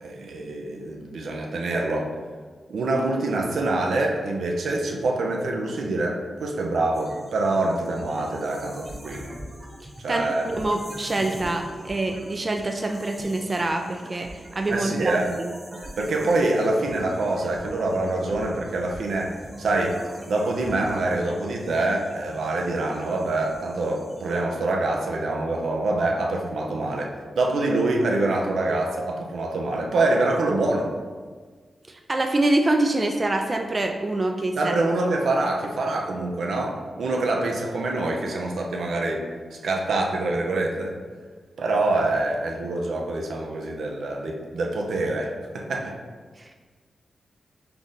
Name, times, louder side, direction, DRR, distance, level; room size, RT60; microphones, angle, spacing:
voice 1, 0.0-2.1 2.7-9.3 10.0-10.5 14.7-15.3 16.0-20.0 20.3-27.1 27.4-30.9 34.6-39.2 39.5-40.9 41.6-46.0, right 2 dB, 85° right, 0 dB, 0.6 m, -25 dB
sound 1, 6.9-24.4, right 1 dB, 15° right, 1.0 m, -43 dB
voice 2, 9.8-15.2 31.9-34.7 36.2-36.3 46.4-46.7, right 2 dB, 35° right, 4 dB, 0.4 m, -26 dB
3.8 x 3.4 x 4.0 m, 1.5 s
cardioid pair, 70°, 0 cm